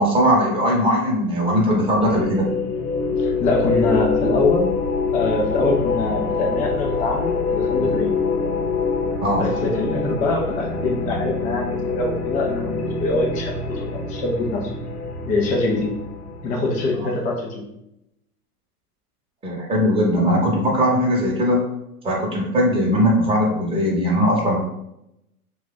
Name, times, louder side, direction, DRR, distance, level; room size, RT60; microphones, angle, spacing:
voice 1, 0.0-2.4 9.2-9.5 17.0-17.1 19.4-21.6 22.0-24.6, equal, 10° right, -3 dB, 0.8 m, -19 dB
sound 1, 1.5-17.0, left 4 dB, 80° left, 0.8 m, -25 dB
voice 2, 3.2-4.7 5.1-8.1 9.4-9.5 9.8-14.7 15.3-15.9 16.4-17.6, left 3 dB, 20° left, 0 dB, 0.3 m, -23 dB
2.6 x 2.3 x 3.9 m, 0.83 s
hypercardioid pair, 120°, 45 cm